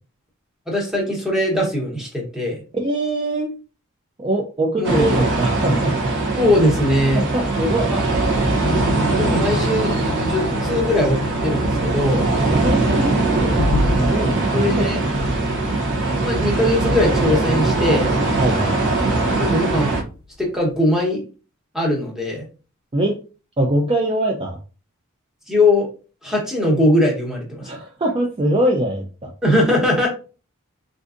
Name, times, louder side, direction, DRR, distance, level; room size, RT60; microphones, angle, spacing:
voice 1, 0.7-2.6 4.8-5.1 6.4-7.2 7.9-8.0 9.1-9.9 10.2-12.2 14.5-15.0 16.2-18.1 19.4-19.9 20.4-21.2 21.7-22.5 25.5-25.9 26.2-27.7 29.4-30.1, left 1 dB, ahead, -2 dB, 1.0 m, -20 dB
voice 2, 2.7-3.5 4.2-6.0 7.1-7.9 12.5-13.6 14.0-14.9 18.4-19.0 22.9-23.2 23.6-24.6 27.6-29.3, right 1 dB, 25° right, 0 dB, 0.4 m, -22 dB
sound 1, 4.8-20.0, right 2 dB, 55° right, 0.7 m, -21 dB
sound 2, 8.6-20.2 20.4-20.7, left 2 dB, 55° left, 0.4 m, -30 dB
3.8 x 2.5 x 2.4 m, 0.35 s
head